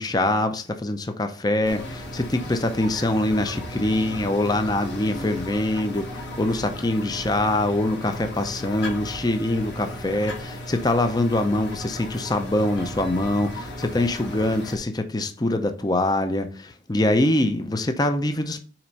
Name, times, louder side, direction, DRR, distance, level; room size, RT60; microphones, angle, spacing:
voice 1, 0.0-18.6, left 1 dB, 20° left, 0.6 m, -24 dB
sound 1, 1.7-14.8, left 1 dB, 70° left, 2.3 m, -35 dB
5.8 x 4.3 x 5.2 m
head